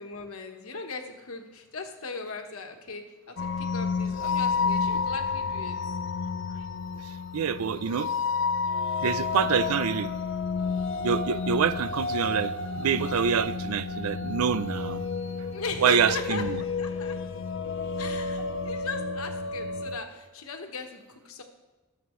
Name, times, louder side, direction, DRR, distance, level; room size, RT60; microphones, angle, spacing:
voice 1, 0.0-5.8 15.5-17.2 18.0-21.4, left 3 dB, 75° left, 4 dB, 1.2 m, -37 dB
sound 1, 3.4-20.0, left 4 dB, 55° left, 0.6 m, -30 dB
voice 2, 7.0-8.1 9.0-10.1 11.0-15.0 15.8-16.6, right 7 dB, 90° right, 15 dB, 0.4 m, -26 dB
19.0 x 7.2 x 3.1 m, 1.2 s
head